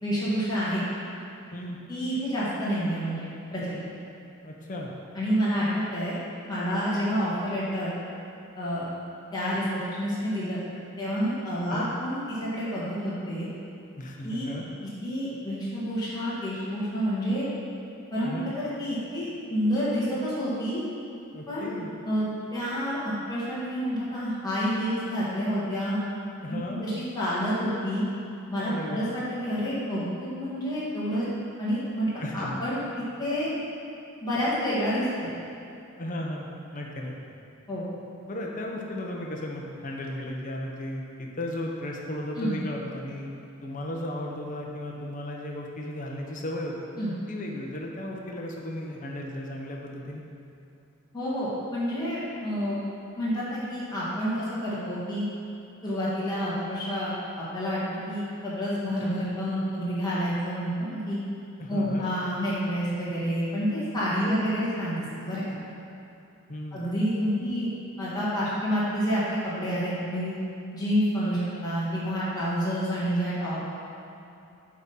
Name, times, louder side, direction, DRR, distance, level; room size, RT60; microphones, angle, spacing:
voice 1, 0.0-0.8 1.9-3.8 5.2-6.2 6.5-7.9 8.6-8.9 9.3-10.6 11.0-13.5 14.2-14.5 15.0-17.5 18.1-20.8 21.5-21.7 22.1-26.0 26.5-28.0 28.5-31.3 31.6-32.8 33.2-33.5 34.2-35.3 37.7-37.8 42.4-42.5 47.0-47.1 51.1-52.8 53.2-55.3 55.8-57.8 58.1-61.2 61.7-65.4 66.7-67.7 68.0-70.4 70.7-73.6, equal, 20° left, -10 dB, 1.8 m, -28 dB
voice 2, 4.4-4.9 11.7-11.9 14.0-14.7 18.2-18.5 21.3-21.9 26.4-26.9 28.6-29.1 32.2-32.6 36.0-36.5 36.7-37.1 38.2-43.3 43.6-46.8 47.3-50.2 61.6-62.1 64.2-64.5 66.5-66.8, left 1 dB, 35° left, -1 dB, 0.8 m, -35 dB
8.7 x 3.7 x 5.5 m, 2.8 s
head